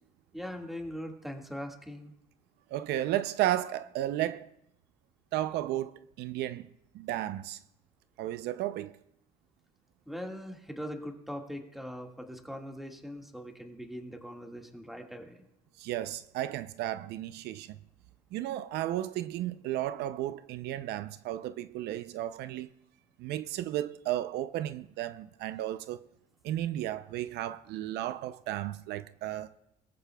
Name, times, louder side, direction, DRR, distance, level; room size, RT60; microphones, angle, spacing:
voice 1, 0.3-2.1 10.1-15.4, equal, ahead, 1.8 m, -41 dB
voice 2, 2.7-4.5 5.3-6.7 6.9-7.6 8.2-9.0 15.8-17.8 18.3-22.7 23.2-26.1 26.4-29.5, right 13 dB, 80° right, 0.5 m, -33 dB
23.0 x 14.5 x 2.3 m
cardioid pair, 110°, 17 cm